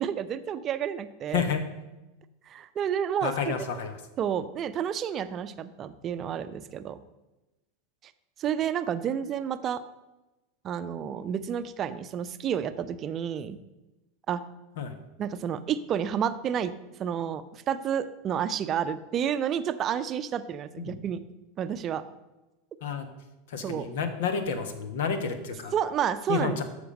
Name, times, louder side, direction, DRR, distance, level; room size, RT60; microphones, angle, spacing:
voice 1, 0.0-1.4 2.5-3.5 4.2-7.0 8.4-9.8 10.6-13.6 14.3-14.4 15.2-16.7 17.0-21.2 21.6-22.0 23.6-23.9 25.7-26.6, right 8 dB, 35° right, 11 dB, 0.6 m, -30 dB
voice 2, 1.3-1.6 3.2-4.0 14.8-14.9 20.8-20.9 22.8-23.1 23.5-25.7 26.3-26.6, left 6 dB, 60° left, 9 dB, 1.3 m, -30 dB
13.5 x 5.3 x 5.3 m, 1.0 s
figure-of-eight pair, 85°, 0 cm